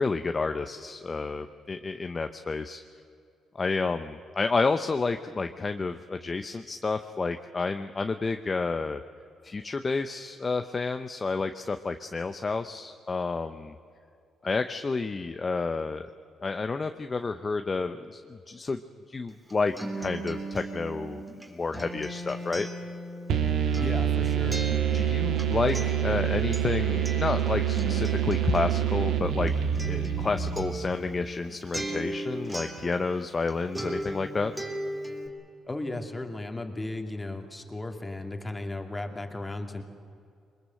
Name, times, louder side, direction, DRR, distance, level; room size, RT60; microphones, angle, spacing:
voice 1, 0.0-2.8 3.5-9.0 9.4-13.7 14.4-16.1 16.4-18.8 19.1-22.7 24.9-29.5 29.8-34.5, left 4 dB, 30° left, 8 dB, 0.9 m, -30 dB
Acoustic guitar, 19.3-33.5 33.7-35.3, right 1 dB, 15° right, 3.6 m, -37 dB
sound 1, 23.3-31.0, right 10 dB, 80° right, 1.8 m, -27 dB
voice 2, 23.8-24.6 35.7-39.8, left 2 dB, 15° left, 5 dB, 2.6 m, -35 dB
22.5 x 21.0 x 7.8 m, 2.5 s
cardioid pair, 90°, 0 cm